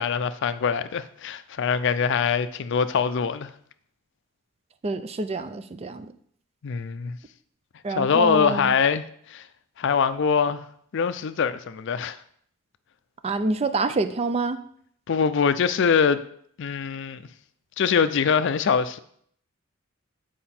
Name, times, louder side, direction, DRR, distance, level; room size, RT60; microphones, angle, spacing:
voice 1, 0.0-3.5 6.6-7.2 8.0-9.0 9.3-9.4 9.8-10.6 10.9-12.2 15.1-16.2 16.6-17.2 17.8-19.0, left 6 dB, 60° left, 0.4 m, -23 dB
voice 2, 4.8-6.1 7.8-8.7 13.2-14.6, right 3 dB, 30° right, 0.4 m, -26 dB
7.6 x 4.9 x 4.3 m
head